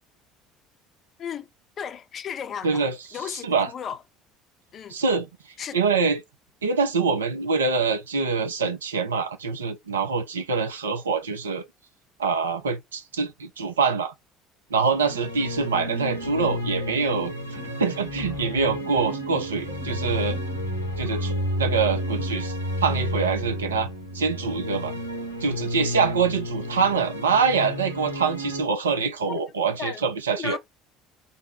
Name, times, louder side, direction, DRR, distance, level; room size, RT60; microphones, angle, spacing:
voice 1, 1.8-2.8 3.1-4.0 4.7-5.0 5.6-5.8 29.3-29.4 29.8-30.0 30.3-30.6, left 7 dB, 40° left, 0.5 m, -34 dB
voice 2, 2.6-3.0 3.3-3.7 4.9-5.3 5.7-6.2 6.6-11.7 12.2-14.1 14.7-20.4 21.0-22.5 22.8-23.9 24.1-24.9 25.4-30.6, right 5 dB, 80° right, 0.6 m, -25 dB
sound 1, 14.8-28.6, equal, 90° left, 0.6 m, -31 dB
sound 2, 15.5-22.6, right 5 dB, 30° right, 0.9 m, -44 dB
4.1 x 2.1 x 3.5 m
figure-of-eight pair, 60°, 0 cm